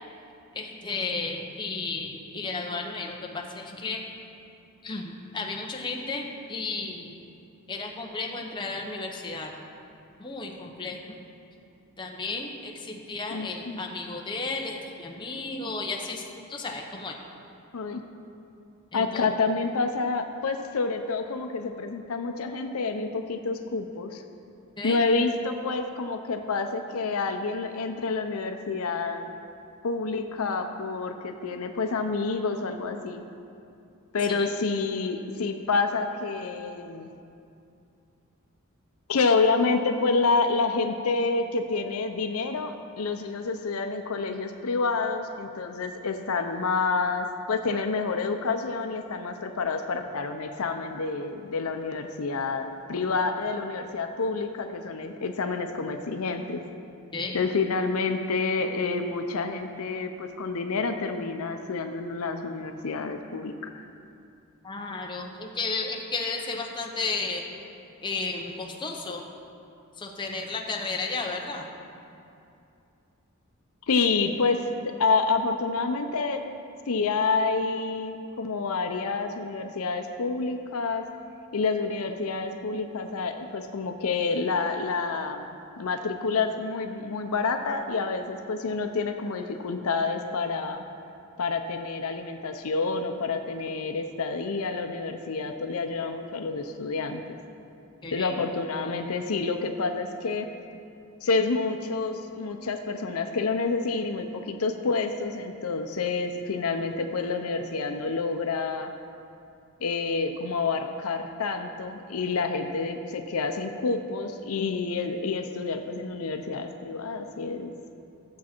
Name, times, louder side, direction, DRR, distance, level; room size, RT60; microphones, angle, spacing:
voice 1, 0.5-4.1 4.8-7.1 7.7-9.5 10.2-11.3 12.0-17.2 18.9-19.3 24.8-25.0 34.3-34.5 57.1-57.4 64.6-67.4 68.0-69.2 70.0-71.7 98.0-98.4, left 3 dB, 20° left, 0 dB, 0.8 m, -33 dB
voice 2, 13.3-13.8 17.7-18.0 18.9-24.2 24.8-29.3 29.8-33.2 34.1-37.1 39.1-56.6 57.3-63.8 73.9-76.4 76.9-81.1 81.5-90.8 91.4-97.2 98.1-100.5 101.2-108.9 109.8-117.7, left 4 dB, 75° left, 6 dB, 0.6 m, -28 dB
13.0 x 7.3 x 4.4 m, 2.6 s
head